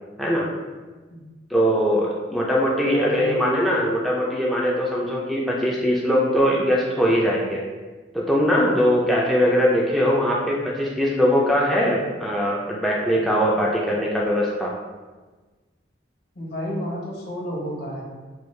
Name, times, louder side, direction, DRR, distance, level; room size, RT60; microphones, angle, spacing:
voice 1, 1.5-7.6 8.3-14.7, equal, ahead, -5 dB, 0.3 m, -21 dB
voice 2, 2.9-3.4 16.3-18.0, equal, 55° left, -3 dB, 1.0 m, -30 dB
4.6 x 2.2 x 3.2 m, 1.3 s
head